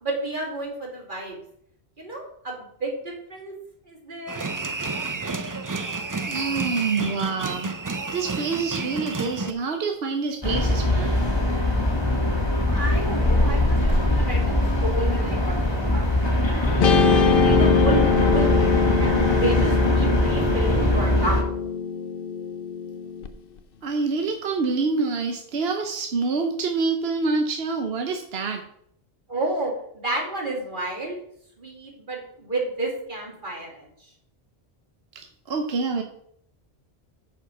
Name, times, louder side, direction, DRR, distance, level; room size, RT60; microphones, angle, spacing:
voice 1, 0.0-1.4 2.0-3.6 3.9-4.4 12.6-16.1 16.4-21.4 29.3-31.2 31.6-33.9, right 2 dB, 50° right, 0 dB, 2.4 m, -31 dB
sound 1, 4.3-9.5, right 3 dB, 30° right, 0.4 m, -30 dB
voice 2, 6.3-7.7 8.1-11.2 15.2-15.3 23.8-28.6 35.1-36.0, right 4 dB, 70° right, 4 dB, 1.1 m, -26 dB
sound 2, 10.4-21.4, left 1 dB, 25° left, 1.7 m, -22 dB
Guitar, 16.8-23.3, left 6 dB, 60° left, 0.8 m, -23 dB
9.2 x 5.0 x 5.9 m, 0.69 s
omnidirectional pair, 1.1 m